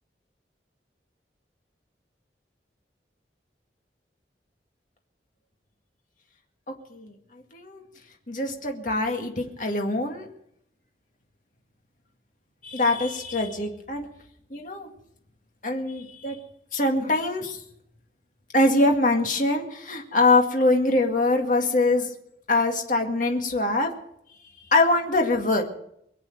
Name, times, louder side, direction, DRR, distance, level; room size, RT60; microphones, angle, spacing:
voice 1, 8.3-10.3 12.6-14.1 14.5-14.9 15.6-16.4 16.7-17.6 18.5-22.1 22.5-23.9 24.7-25.6, left 2 dB, 45° left, 2 dB, 2.1 m, -23 dB
23.0 x 8.2 x 6.5 m, 0.73 s
head